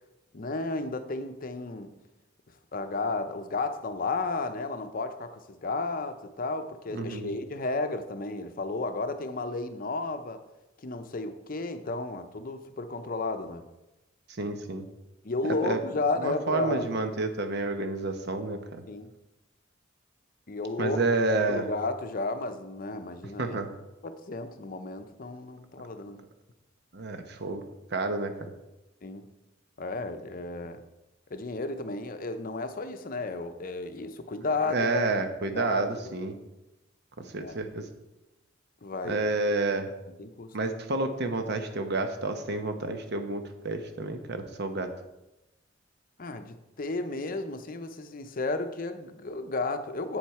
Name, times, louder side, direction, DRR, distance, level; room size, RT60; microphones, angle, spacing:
voice 1, 0.3-1.9 2.7-10.4 10.8-13.6 15.2-16.9 18.9-19.1 20.5-21.0 21.5-23.6 24.0-26.2 29.0-29.3 29.8-30.8 31.3-34.9 35.5-36.3 37.4-37.5 38.8-39.2 40.2-40.5 46.2-50.2, left 3 dB, 45° left, 9 dB, 0.7 m, -33 dB
voice 2, 6.9-7.3 14.4-14.9 15.6-15.8 16.2-18.8 20.8-21.7 23.4-23.7 26.9-27.6 27.9-28.5 34.7-36.3 37.2-37.9 39.0-39.9 40.5-44.9, right 2 dB, 55° right, 7 dB, 0.9 m, -29 dB
8.0 x 7.3 x 4.7 m, 0.99 s
head